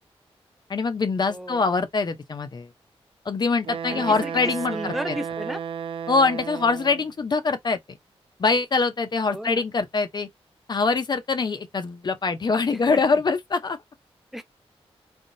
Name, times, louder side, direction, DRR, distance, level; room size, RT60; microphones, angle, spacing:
voice 1, 0.7-2.7 3.2-5.2 6.1-7.8 8.4-10.3 10.7-13.8, left 4 dB, 45° left, 0.7 m, -24 dB
voice 2, 1.3-1.6 3.9-5.6 9.3-9.6 12.7-13.2 14.3-14.4, equal, ahead, 0.6 m, -34 dB
Wind instrument woodwind instrument, 3.6-7.1, right 8 dB, 60° right, 0.4 m, -33 dB
3.6 x 2.4 x 2.6 m
wide cardioid pair, 95°, 10 cm